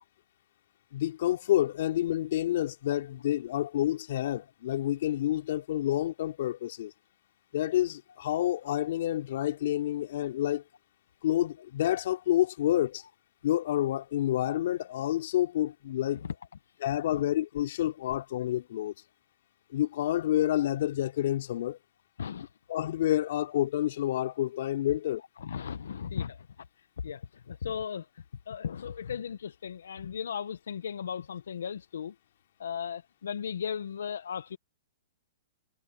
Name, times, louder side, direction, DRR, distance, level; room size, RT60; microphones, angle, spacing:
voice 1, 0.9-6.9 7.5-10.6 11.2-13.0 13.4-16.2 16.8-18.9 19.7-21.8 22.7-25.2, left 13 dB, 65° left, 3.0 m, -28 dB
voice 2, 22.2-22.5 25.4-26.5 26.8-28.1 28.5-32.1 32.6-34.6, left 7 dB, 80° left, 0.8 m, -36 dB
hypercardioid pair, 130°, 0 cm